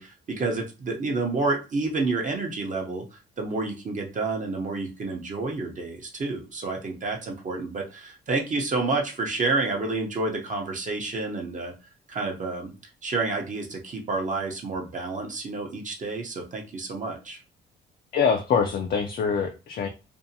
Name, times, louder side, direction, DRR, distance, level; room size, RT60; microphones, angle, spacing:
voice 1, 0.0-11.7 12.1-12.7 13.0-17.4, right 3 dB, 40° right, 0 dB, 0.7 m, -29 dB
voice 2, 18.1-19.9, left 6 dB, 50° left, 4 dB, 0.4 m, -24 dB
2.6 x 2.1 x 2.6 m, 0.31 s
cardioid pair, 90°, 20 cm